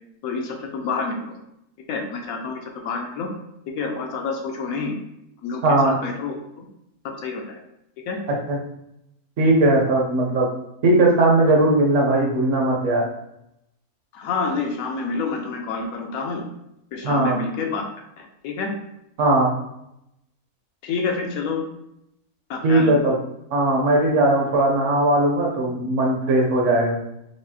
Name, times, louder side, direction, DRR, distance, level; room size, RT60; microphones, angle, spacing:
voice 1, 0.2-1.3 1.9-3.3 3.8-4.9 5.4-6.7 7.2-7.6 8.1-8.2 14.1-16.5 16.9-17.8 18.2-18.7 20.8-21.6 22.5-22.9, left 4 dB, 75° left, 3 dB, 1.0 m, -28 dB
voice 2, 5.6-5.9 8.5-8.6 9.4-10.5 10.8-13.0 17.0-17.4 19.2-19.5 22.6-23.1 23.5-27.0, right 2 dB, 60° right, -1 dB, 1.0 m, -18 dB
4.7 x 2.4 x 2.7 m, 0.81 s
omnidirectional pair, 1.6 m